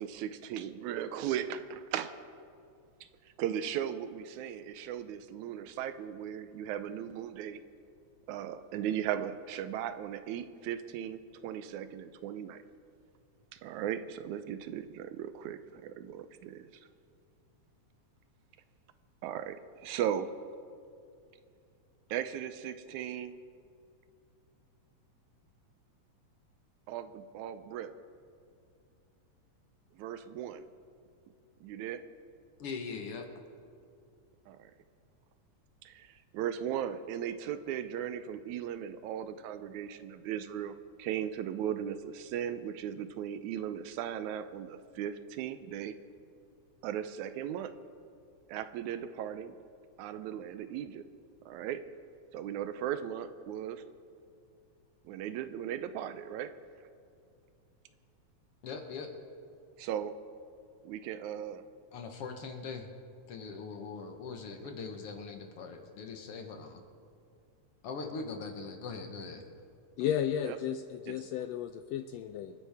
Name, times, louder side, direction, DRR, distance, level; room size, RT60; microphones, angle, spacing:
voice 1, 0.0-2.1 3.4-7.6 8.3-12.6 13.5-16.8 19.2-20.3 22.1-23.4 26.9-27.9 29.9-30.7 31.6-32.0 34.5-34.7 35.8-46.0 46.8-47.7 48.5-49.6 50.0-51.1 51.5-51.8 52.3-53.8 55.1-56.5 59.8-60.2 60.8-61.6 70.4-70.6 71.1-71.2, right 10 dB, 85° right, 11 dB, 2.1 m, -37 dB
voice 2, 32.6-33.3 58.6-59.1 61.9-62.9 63.3-66.8 67.8-69.5, left 4 dB, 60° left, 4 dB, 1.8 m, -41 dB
voice 3, 70.0-72.5, left 9 dB, 80° left, 9 dB, 1.5 m, -33 dB
27.0 x 9.9 x 3.5 m, 2.4 s
omnidirectional pair, 3.3 m